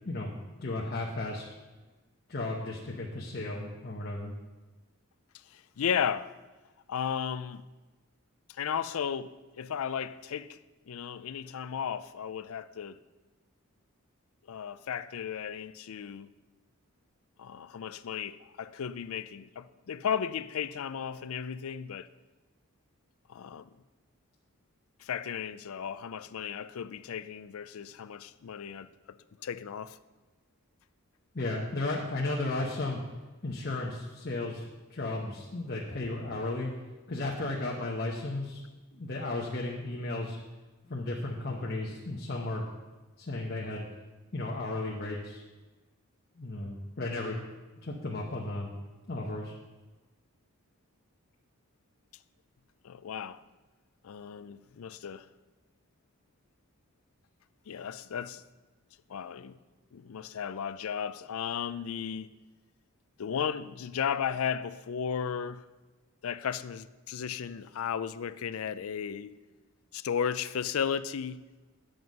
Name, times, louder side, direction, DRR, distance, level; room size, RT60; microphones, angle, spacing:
voice 1, 0.0-1.4 2.3-4.3 31.3-33.0 33.4-34.6 34.9-36.7 37.1-38.6 38.9-40.4 40.8-42.7 43.2-43.9 44.3-45.4 46.4-47.4 47.8-48.7 49.1-49.5, left 2 dB, 45° left, 0.9 m, -34 dB
voice 2, 5.5-6.3 6.9-7.6 8.5-10.6 10.9-13.0 14.5-16.3 17.4-22.1 23.3-23.7 25.0-28.9 29.4-30.0 52.8-53.4 54.0-55.3 57.7-58.4 59.1-59.6 59.9-62.3 63.2-65.6 66.2-69.4 69.9-71.4, left 7 dB, 80° left, 0.4 m, -35 dB
9.4 x 7.8 x 5.2 m
head